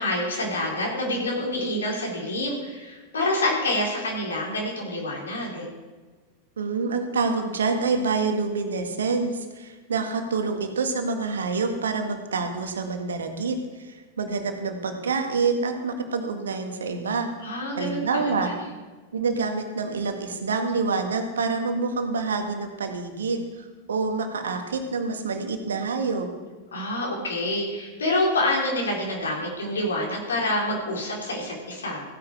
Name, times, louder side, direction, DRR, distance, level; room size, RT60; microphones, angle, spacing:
voice 1, 0.0-5.7 17.4-18.3 26.7-32.0, left 1 dB, 70° left, -2 dB, 4.1 m, -27 dB
voice 2, 6.6-17.3 17.8-18.5 19.1-23.4 23.9-26.3, right 4 dB, 70° right, 5 dB, 1.8 m, -27 dB
15.5 x 9.8 x 4.7 m, 1.3 s
figure-of-eight pair, 90°, 0 cm